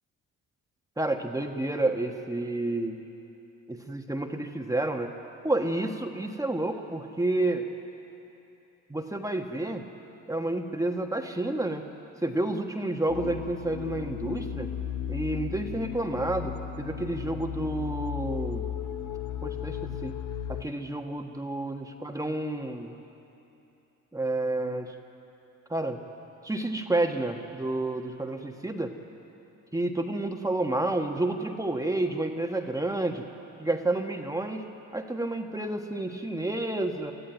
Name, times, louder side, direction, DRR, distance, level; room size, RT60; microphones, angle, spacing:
voice 1, 1.0-3.0 3.7-5.1 5.4-7.7 8.9-9.8 10.3-11.8 12.2-14.7 15.1-18.6 19.4-20.1 20.5-23.0 24.1-24.9 25.7-26.0 26.4-28.9 29.7-33.3 33.6-34.6 34.9-37.1, right 2 dB, 10° right, 3 dB, 1.4 m, -30 dB
sound 1, 13.1-20.6, left 9 dB, 70° left, 1.0 m, -35 dB
23.5 x 14.0 x 9.4 m, 2.9 s
cardioid pair, 90°, 30 cm